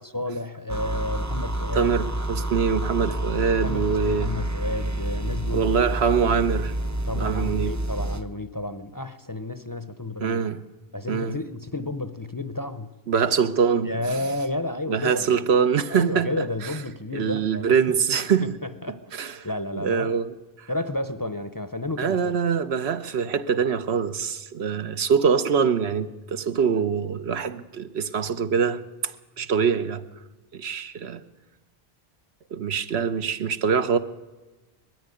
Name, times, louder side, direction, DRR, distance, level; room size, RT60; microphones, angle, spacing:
voice 1, 0.0-1.9 3.0-3.1 3.6-5.7 7.1-10.4 10.9-12.9 13.8-15.3 15.9-17.7 18.4-19.2 19.4-20.1 20.7-22.4, left 2 dB, 25° left, 0.6 m, -31 dB
sound 1, 0.7-8.3, right 1 dB, 20° right, 0.5 m, -28 dB
voice 2, 1.7-4.3 5.5-6.8 7.1-7.7 10.2-10.6 11.1-11.4 13.1-14.2 14.9-16.8 17.1-18.5 19.1-19.4 19.8-20.3 20.6-20.7 22.0-30.0 30.5-31.2 32.5-34.0, right 6 dB, 80° right, 1.1 m, -24 dB
20.0 x 14.0 x 9.8 m
omnidirectional pair, 1.1 m